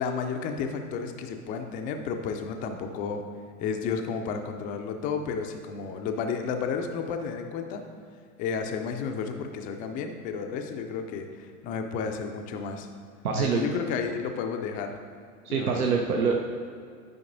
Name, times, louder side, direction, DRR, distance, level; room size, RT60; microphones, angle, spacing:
voice 1, 0.0-3.2 3.6-7.8 8.4-12.9 13.3-15.0 15.5-15.8, left 6 dB, 20° left, 5 dB, 0.4 m, -32 dB
voice 2, 13.2-13.7 15.4-16.4, right 5 dB, 75° right, 1 dB, 0.8 m, -25 dB
11.0 x 5.2 x 2.6 m, 2.2 s
figure-of-eight pair, 90°, 44 cm